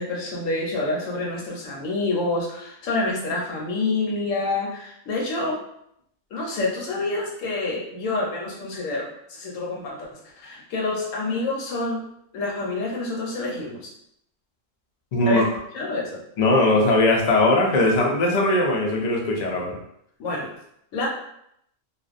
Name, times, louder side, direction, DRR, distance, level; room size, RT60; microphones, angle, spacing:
voice 1, 0.0-5.6 6.3-12.0 12.3-13.9 15.3-15.4 15.7-16.2 20.2-20.5 20.9-21.1, left 2 dB, 80° left, -2 dB, 1.1 m, -27 dB
voice 2, 15.1-15.5 16.4-19.8, left 2 dB, 65° left, -1 dB, 0.4 m, -20 dB
2.5 x 2.0 x 2.4 m, 0.73 s
omnidirectional pair, 1.3 m